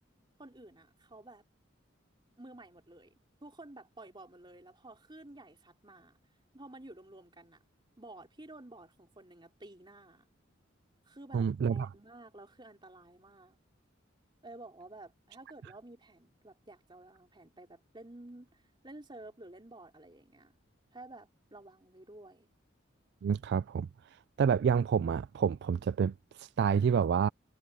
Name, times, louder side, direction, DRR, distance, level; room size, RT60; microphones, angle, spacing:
voice 1, 0.4-1.4 2.4-3.1 3.4-6.2 6.5-7.6 8.0-10.3 11.0-13.6 14.4-20.5 20.9-22.5, right 2 dB, 25° right, 3.3 m, -52 dB
voice 2, 11.3-11.9 23.2-23.9 24.4-27.3, right 7 dB, 60° right, 0.3 m, -28 dB
head